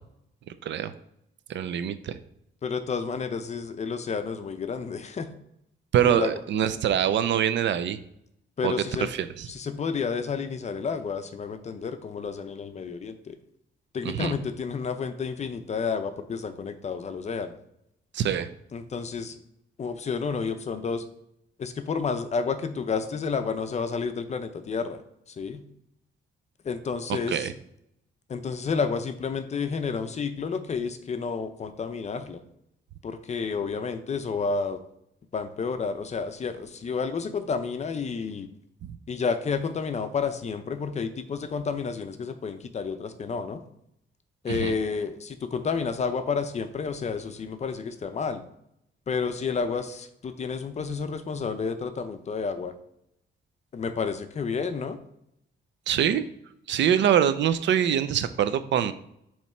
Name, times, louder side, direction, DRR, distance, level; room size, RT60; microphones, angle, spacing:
voice 1, 0.6-0.9 1.5-2.2 5.9-8.0 8.6-9.5 14.0-14.3 18.1-18.5 27.1-27.5 38.8-38.9 44.5-44.7 55.9-56.2 56.7-58.9, right 9 dB, 65° right, 12 dB, 0.5 m, -24 dB
voice 2, 2.6-5.3 6.0-6.3 8.6-9.1 9.5-13.4 13.9-17.6 18.7-19.4 19.8-21.0 21.6-25.0 25.4-25.6 26.6-27.5 28.3-32.4 33.0-34.8 35.3-38.5 39.1-43.6 44.4-48.4 49.1-52.7 53.7-55.0, left 5 dB, 35° left, 9 dB, 0.5 m, -30 dB
7.1 x 3.1 x 4.3 m, 0.77 s
cardioid pair, 140°, 20 cm